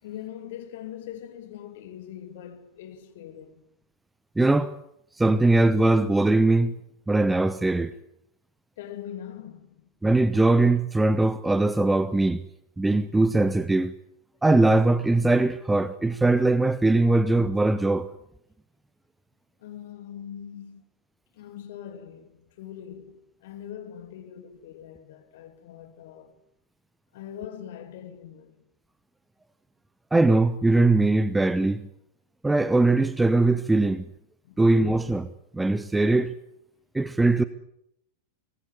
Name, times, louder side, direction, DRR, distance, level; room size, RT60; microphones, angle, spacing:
voice 1, 0.0-3.7 8.8-9.9 19.6-20.8 21.3-26.3 27.1-28.5 34.4-34.6, left 10 dB, 55° left, 2.8 m, -42 dB
voice 2, 4.4-4.8 5.2-6.8 7.1-7.9 10.0-12.4 12.8-13.9 14.4-18.1 30.1-31.9 32.4-34.0 34.6-36.3 36.9-37.4, right 2 dB, 10° right, 1.0 m, -21 dB
24.5 x 19.5 x 9.6 m
figure-of-eight pair, 90°, 0 cm